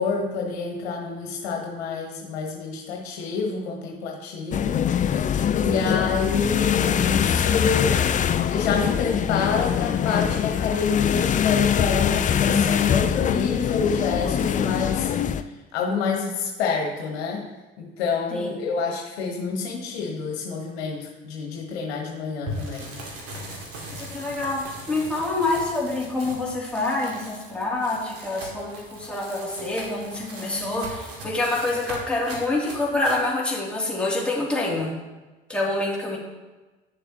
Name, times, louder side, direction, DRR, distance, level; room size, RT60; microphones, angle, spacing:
voice 1, 0.0-4.9 5.6-8.0 8.5-15.1 15.7-17.4 17.8-23.0, left 5 dB, 70° left, 0 dB, 1.3 m, -27 dB
sound 1, 4.5-15.4, left 8 dB, 25° left, 0.4 m, -23 dB
sound 2, 22.5-33.2, right 1 dB, 45° right, 2.3 m, -39 dB
voice 2, 24.0-34.9 35.5-36.2, left 2 dB, 5° left, -6 dB, 2.9 m, -26 dB
10.0 x 6.8 x 3.0 m, 1.2 s
hypercardioid pair, 65°, 32 cm